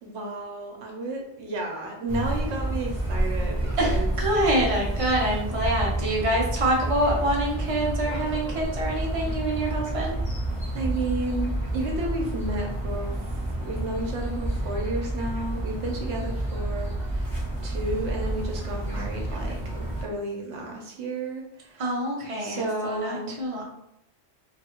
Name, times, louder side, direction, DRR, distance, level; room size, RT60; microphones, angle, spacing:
voice 1, 0.0-4.1 10.7-13.1 13.6-17.3 17.6-21.8 22.4-23.4, right 2 dB, 65° right, 1 dB, 1.0 m, -32 dB
sound 1, 2.1-20.0, right 1 dB, 25° left, 0.9 m, -29 dB
voice 2, 3.8-10.1 21.8-23.6, right 1 dB, 35° right, -2 dB, 0.7 m, -26 dB
3.1 x 2.3 x 2.9 m, 0.80 s
omnidirectional pair, 1.3 m